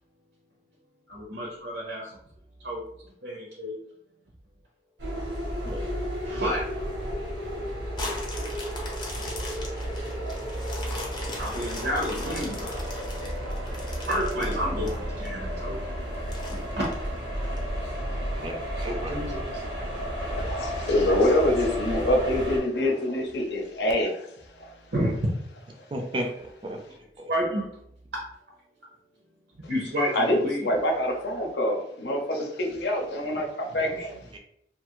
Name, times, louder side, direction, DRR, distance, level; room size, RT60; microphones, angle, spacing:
voice 1, 1.1-2.2 2.6-2.8 3.2-3.7 6.2-6.7 8.4-8.5 11.3-12.7 14.1-15.8 16.5-16.8 18.8-19.4 24.9-25.2 27.3-27.7 29.7-30.7 33.7-34.0, equal, 65° right, -4 dB, 0.7 m, -30 dB
sound 1, 5.0-22.6, equal, 85° right, 1.0 m, -32 dB
sound 2, 8.0-15.3 15.7-15.8 16.3-17.6 18.1-18.2, left 2 dB, 25° left, 0.6 m, -39 dB
voice 2, 18.3-19.2 25.9-26.8 27.2-27.3 34.3-34.4, right 1 dB, 30° right, 2 dB, 0.4 m, -34 dB
voice 3, 20.4-24.3 24.6-24.7 30.2-34.2, left 1 dB, 75° left, 2 dB, 0.6 m, -25 dB
2.7 x 2.3 x 3.0 m, 0.71 s
head